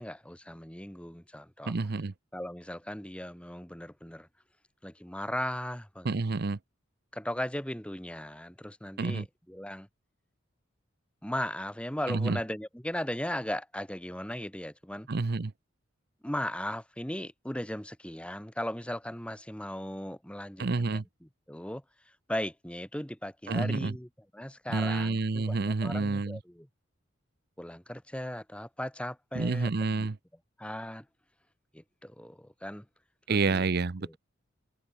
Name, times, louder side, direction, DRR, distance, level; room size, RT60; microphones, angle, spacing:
voice 1, 0.0-1.8 2.3-4.3 4.8-6.2 7.1-9.9 11.2-15.1 16.2-26.7 27.6-30.1 30.6-31.1 31.7-32.9 33.3-33.7 34.0-34.2, left 1 dB, 5° left, 2.9 m, -37 dB
voice 2, 1.7-2.1 6.0-6.6 9.0-9.2 12.1-12.4 15.1-15.5 20.6-21.0 23.5-23.9 24.7-26.4 29.4-30.2 33.3-34.2, right 3 dB, 55° right, 0.7 m, -29 dB
head